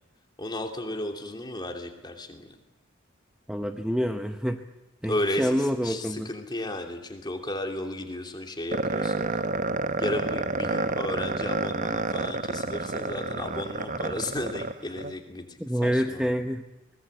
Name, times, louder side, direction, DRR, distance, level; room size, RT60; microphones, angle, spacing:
voice 1, 0.4-2.6 5.0-9.3 10.0-16.3, left 1 dB, 20° left, 3 dB, 2.8 m, -34 dB
voice 2, 3.5-4.6 5.0-6.3 15.6-16.6, equal, 5° right, 6 dB, 0.8 m, -27 dB
sound 1, 8.7-15.1, right 3 dB, 40° right, 0.8 m, -29 dB
23.5 x 19.5 x 8.0 m, 1.0 s
head